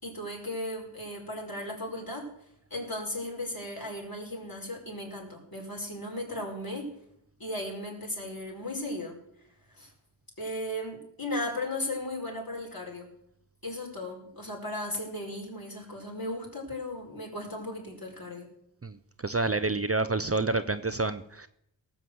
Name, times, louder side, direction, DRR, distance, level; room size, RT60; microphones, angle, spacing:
voice 1, 0.0-2.3 2.7-6.9 7.4-9.2 9.8-9.9 10.4-13.1 13.6-18.5, left 1 dB, 50° left, 0 dB, 5.0 m, -36 dB
voice 2, 19.2-21.5, right 3 dB, 30° right, 11 dB, 0.7 m, -28 dB
18.0 x 7.2 x 7.9 m, 0.74 s
wide cardioid pair, 65°, 45 cm